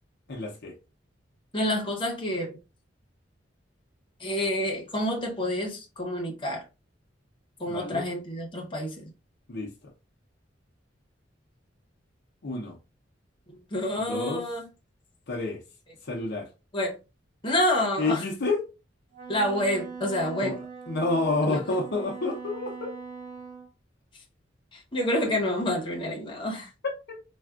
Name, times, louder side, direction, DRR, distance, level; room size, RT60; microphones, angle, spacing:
voice 1, 0.3-0.7 7.7-8.0 9.5-9.7 12.4-12.8 14.1-14.4 15.3-15.6 16.0-16.5 18.0-18.6 20.4-20.5 20.9-22.9 26.8-27.2, left 3 dB, 60° left, 0.7 m, -29 dB
voice 2, 1.5-2.6 4.2-6.6 7.6-9.1 13.7-14.7 16.7-16.9 17.4-18.2 19.3-20.6 21.4-21.6 24.7-26.7, left 1 dB, 25° left, 0.9 m, -28 dB
Wind instrument woodwind instrument, 19.1-23.7, right 5 dB, 35° right, 1.1 m, -41 dB
3.4 x 2.3 x 2.3 m
head